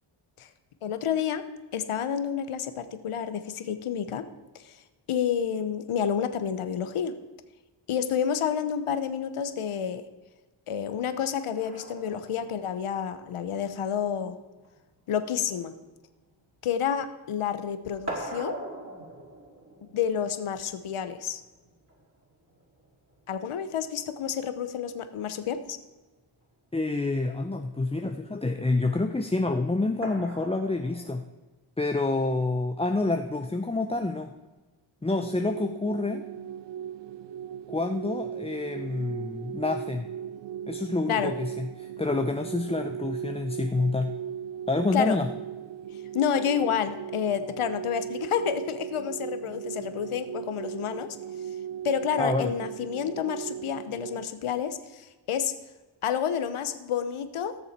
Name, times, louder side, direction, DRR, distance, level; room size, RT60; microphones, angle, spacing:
voice 1, 0.8-1.4 1.7-4.2 4.5-4.8 5.1-7.1 7.9-10.0 10.7-14.4 15.1-15.7 16.6-18.6 19.9-21.4 23.3-25.8 41.1-41.3 44.9-45.2 46.1-51.2 51.8-55.5 56.0-57.6, left 8 dB, 85° left, 11 dB, 1.0 m, -29 dB
sound 1, 11.5-17.3 17.5-24.6 26.0-26.1 26.4-26.5 30.0-31.2, right 1 dB, 30° right, 4.6 m, -43 dB
voice 2, 26.7-31.2 31.8-34.3 35.0-36.2 37.7-40.1 40.7-44.1 44.7-45.3 52.2-52.5, left 2 dB, 10° left, 5 dB, 0.6 m, -28 dB
sound 2, 35.2-54.3, right 9 dB, 60° right, 0.5 m, -38 dB
17.5 x 7.0 x 4.4 m, 1.2 s
cardioid pair, 75°, 49 cm